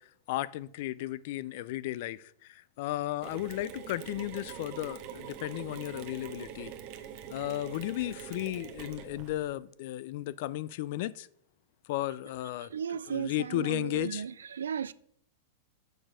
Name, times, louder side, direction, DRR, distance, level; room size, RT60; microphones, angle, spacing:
voice 1, 0.3-6.7 7.3-11.3 11.9-12.7 13.1-14.2, left 15 dB, 60° left, 0.4 m, -34 dB
Mechanisms, 3.2-9.5, right 9 dB, 50° right, 1.1 m, -44 dB
voice 2, 12.6-14.9, right 7 dB, 90° right, 0.3 m, -35 dB
6.6 x 5.8 x 5.0 m
hypercardioid pair, 120°, 0 cm